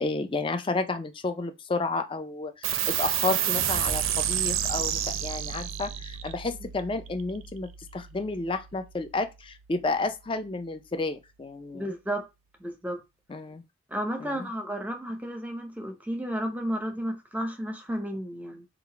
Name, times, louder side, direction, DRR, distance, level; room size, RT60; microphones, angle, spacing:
voice 1, 0.0-11.9 13.3-13.6 14.2-14.5, left 3 dB, 25° left, 0.4 m, -31 dB
sound 1, 2.6-9.5, right 10 dB, 75° right, 0.5 m, -30 dB
voice 2, 11.7-12.2 12.6-13.0 13.9-18.6, equal, 10° right, 0.7 m, -32 dB
3.9 x 2.4 x 4.5 m
head